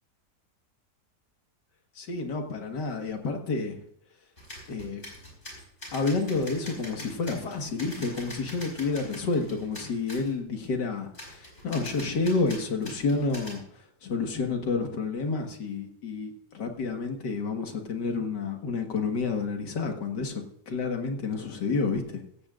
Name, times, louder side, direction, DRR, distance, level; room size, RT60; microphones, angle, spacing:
voice 1, 2.0-3.8 4.7-5.0 5.9-13.6 14.0-22.2, left 4 dB, 90° left, 4 dB, 2.3 m, -30 dB
sound 1, 4.4-10.3 11.1-13.6, left 1 dB, 40° left, 5.0 m, -44 dB
16.0 x 15.5 x 2.5 m, 0.74 s
omnidirectional pair, 1.8 m